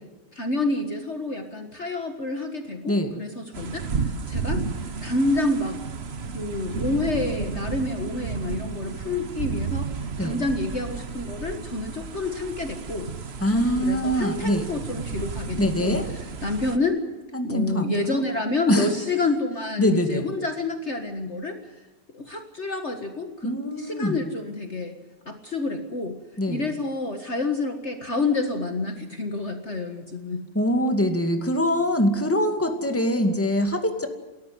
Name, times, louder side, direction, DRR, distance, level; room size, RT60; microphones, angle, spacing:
voice 1, 0.3-4.6 5.0-5.8 6.3-9.9 10.2-13.1 13.5-16.0 16.4-17.0 17.4-21.6 22.1-25.0 25.3-26.2 26.5-30.4, left 2 dB, 40° left, 5 dB, 1.9 m, -28 dB
sound 1, 3.5-16.8, right 5 dB, 40° right, 1.3 m, -32 dB
voice 2, 13.4-14.7 15.6-16.0 17.3-18.2 18.7-18.9 19.8-20.2 23.4-24.2 26.4-26.7 30.5-34.1, equal, 10° left, 5 dB, 2.2 m, -23 dB
30.0 x 14.0 x 8.0 m, 1.2 s
omnidirectional pair, 1.9 m